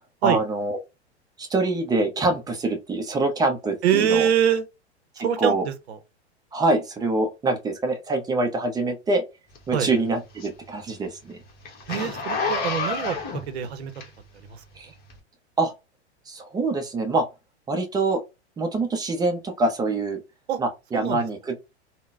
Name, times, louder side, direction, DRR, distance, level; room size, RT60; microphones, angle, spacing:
voice 1, 0.2-0.8 1.4-4.3 5.4-5.7 6.5-9.2 9.7-11.4 14.8-14.9 15.6-15.7 16.3-17.3 17.7-18.2 18.6-20.2 20.6-21.6, right 2 dB, 10° right, 0.5 m, -25 dB
voice 2, 3.8-4.6 5.2-6.0 9.7-9.9 11.9-13.2 13.5-13.9 14.4-14.6 20.5-20.6 20.9-21.2, right 9 dB, 65° right, 0.7 m, -24 dB
Zipper (clothing), 9.5-14.5 15.0-15.2, left 4 dB, 25° left, 1.1 m, -30 dB
3.7 x 2.1 x 2.4 m
hypercardioid pair, 100°, 34 cm